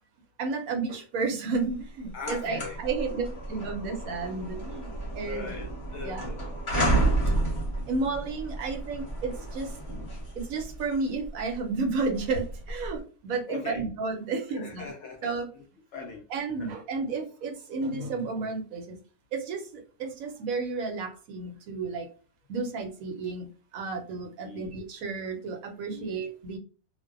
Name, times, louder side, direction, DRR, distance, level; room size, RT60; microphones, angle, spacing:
voice 1, 0.4-5.4 6.0-6.3 6.7-7.0 7.9-9.8 10.4-14.9 15.2-15.5 16.3-19.0 19.3-22.1 22.5-23.5 23.7-26.6, right 4 dB, 75° right, 1.0 m, -32 dB
sound 1, 1.7-1.8 2.1-13.0, right 1 dB, 25° left, 0.7 m, -31 dB
voice 2, 2.1-2.8 3.1-3.2 5.2-6.4 13.5-13.8 14.5-15.6 15.9-16.7 24.4-24.8 25.9-26.2, left 4 dB, 65° left, 0.7 m, -40 dB
2.5 x 2.1 x 2.4 m
omnidirectional pair, 1.6 m